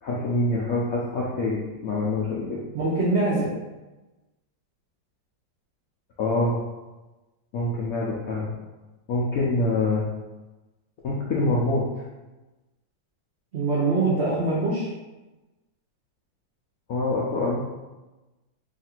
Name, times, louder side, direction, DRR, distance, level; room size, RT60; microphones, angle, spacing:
voice 1, 0.0-2.6 6.2-6.5 7.5-8.5 9.1-10.0 11.0-11.8 16.9-17.6, left 2 dB, 75° left, -5 dB, 0.8 m, -25 dB
voice 2, 2.7-3.5 13.5-14.9, right 3 dB, 90° right, -5 dB, 0.5 m, -23 dB
3.2 x 2.5 x 4.3 m, 1.1 s
omnidirectional pair, 2.1 m